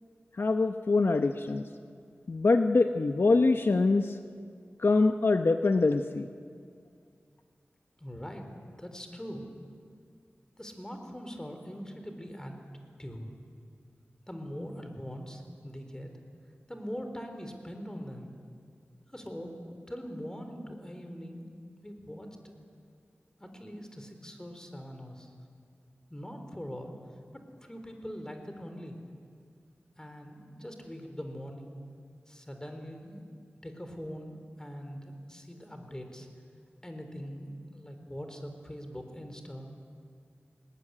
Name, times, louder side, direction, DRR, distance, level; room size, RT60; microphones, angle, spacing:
voice 1, 0.4-1.7 2.3-4.2 4.8-6.3, left 3 dB, 65° left, 7 dB, 0.8 m, -24 dB
voice 2, 8.0-8.5 8.8-9.4 10.6-12.6 13.0-13.3 14.3-16.1 16.7-18.3 19.1-21.5 21.8-22.6 23.4-25.3 26.1-26.9 27.3-29.0 30.0-31.7 32.3-33.3 33.6-36.3 36.8-39.7, equal, 15° left, 5 dB, 4.0 m, -42 dB
20.0 x 19.5 x 9.9 m, 2.2 s
cardioid pair, 45°, 4 cm